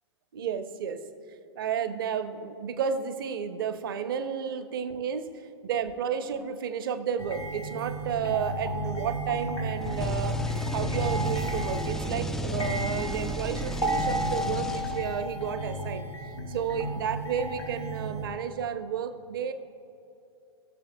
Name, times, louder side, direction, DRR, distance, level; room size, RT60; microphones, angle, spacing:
voice 1, 0.3-1.0 1.6-10.4 10.7-19.5, right 7 dB, 55° right, 10 dB, 0.8 m, -32 dB
sound 1, 7.2-18.3, right 1 dB, 85° left, 1.5 m, -33 dB
sound 2, 9.8-15.3, left 1 dB, 5° left, 0.3 m, -33 dB
19.5 x 7.0 x 2.2 m, 2.8 s
figure-of-eight pair, 105°, 14 cm